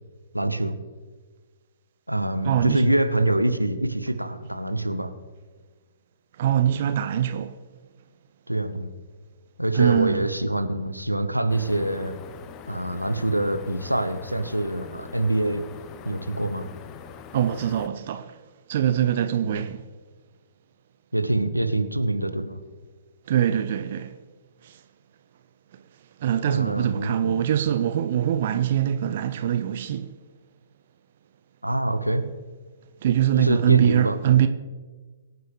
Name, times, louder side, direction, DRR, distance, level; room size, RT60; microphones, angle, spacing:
voice 1, 0.3-0.8 2.1-5.1 8.5-8.9 9.6-12.2 12.7-15.7 16.0-16.7 19.4-19.6 21.1-22.6 26.5-27.3 31.6-32.2 33.4-34.2, right 1 dB, 85° right, 1.1 m, -25 dB
voice 2, 2.4-2.9 6.4-7.5 9.7-10.3 17.3-18.4 18.7-19.8 23.3-24.1 24.6-24.8 25.7-25.8 26.2-30.1 33.0-34.5, right 10 dB, 45° right, 0.6 m, -23 dB
sound 1, 11.5-17.9, left 7 dB, 25° left, 0.7 m, -43 dB
23.5 x 9.3 x 3.3 m
figure-of-eight pair, 120°, 0 cm